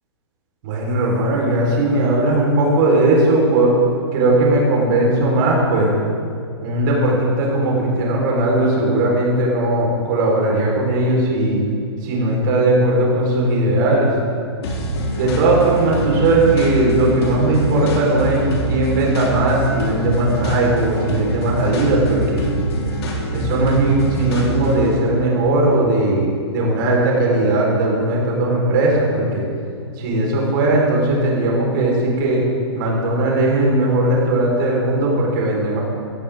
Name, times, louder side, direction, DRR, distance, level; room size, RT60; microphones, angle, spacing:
voice 1, 0.6-3.7 4.1-5.9 6.6-11.6 12.0-14.1 15.1-22.5 23.3-29.4 30.0-32.4 32.7-35.8, right 2 dB, 45° right, -2 dB, 4.0 m, -18 dB
sound 1, 14.6-24.9, right 1 dB, 65° left, 3.4 m, -24 dB
16.5 x 15.5 x 3.6 m, 2.4 s
hypercardioid pair, 130°, 15 cm